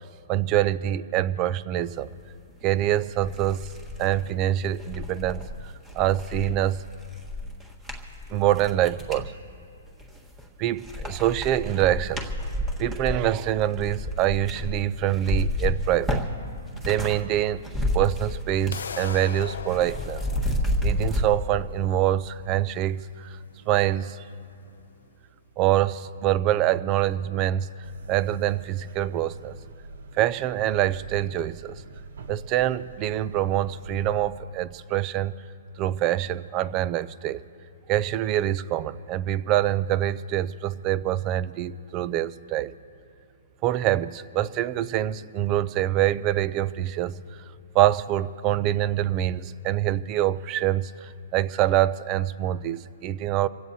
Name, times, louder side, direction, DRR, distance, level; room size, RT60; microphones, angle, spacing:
voice 1, 0.3-2.1 2.6-3.7 4.0-5.5 5.9-6.8 8.3-9.3 10.6-12.5 12.8-16.2 16.8-17.6 17.9-20.2 20.8-23.4 23.7-24.2 25.6-27.7 28.1-29.6 30.1-31.8 32.3-35.3 35.8-37.4 37.9-42.7 43.6-47.2 47.7-53.5, right 12 dB, 25° right, 18 dB, 0.4 m, -25 dB
sound 1, 2.6-2.7 3.1-9.3 9.9-10.5 10.8-17.2 17.5-18.9 19.1-21.3, left 1 dB, 10° right, 1.4 m, -30 dB
sound 2, 18.7-24.7, left 6 dB, 85° left, 0.5 m, -40 dB
sound 3, 27.8-34.3, right 3 dB, 65° right, 0.9 m, -43 dB
27.0 x 16.0 x 2.8 m, 2.6 s
hypercardioid pair, 160°, 0 cm